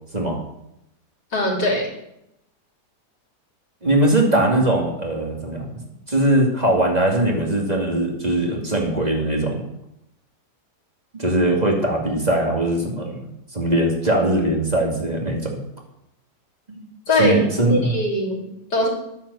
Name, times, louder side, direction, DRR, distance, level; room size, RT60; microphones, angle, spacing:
voice 1, 1.3-1.9 17.1-17.4 17.7-18.9, left 1 dB, 85° left, -2 dB, 4.1 m, -21 dB
voice 2, 3.8-5.7 6.1-9.6 11.1-15.6 16.7-16.8 17.2-17.9, right 1 dB, 25° right, -1 dB, 2.4 m, -21 dB
11.0 x 9.5 x 6.9 m, 0.84 s
omnidirectional pair, 1.8 m